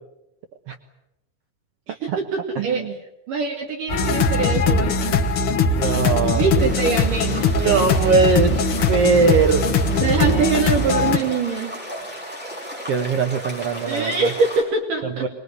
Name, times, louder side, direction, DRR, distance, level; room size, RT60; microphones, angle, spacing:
voice 1, 1.9-2.8 3.3-5.2 6.3-8.2 10.0-11.7 13.9-15.3, right 4 dB, 55° right, 2 dB, 3.9 m, -24 dB
voice 2, 2.6-2.9 5.7-6.5 7.6-8.5 8.9-9.7 12.9-14.3 15.2-15.3, right 5 dB, 75° right, 5 dB, 1.4 m, -20 dB
sound 1, 3.9-11.2, left 3 dB, 80° left, 1.2 m, -20 dB
sound 2, 6.6-14.6, equal, ahead, 7.4 m, -35 dB
24.5 x 22.0 x 9.6 m, 0.88 s
omnidirectional pair, 4.6 m